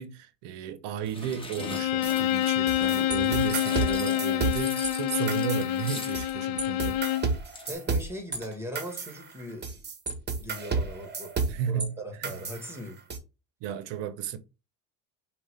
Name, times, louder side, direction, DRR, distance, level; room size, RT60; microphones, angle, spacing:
voice 1, 0.0-7.0 11.5-12.3 13.6-14.4, right 8 dB, 65° right, 0.8 m, -34 dB
sound 1, 1.0-6.4 6.8-6.9 7.2-7.3 7.4-7.7, left 1 dB, 10° left, 1.4 m, -41 dB
Bowed string instrument, 1.6-7.4, left 13 dB, 50° left, 0.5 m, -27 dB
sound 2, 2.0-4.9 5.3-6.3 6.6-11.9 12.2-13.2, right 4 dB, 25° right, 1.1 m, -32 dB
voice 2, 7.7-9.8 10.4-11.3 11.7-13.0, equal, 5° right, 1.5 m, -39 dB
5.5 x 2.4 x 3.4 m
supercardioid pair, 90°, 45 cm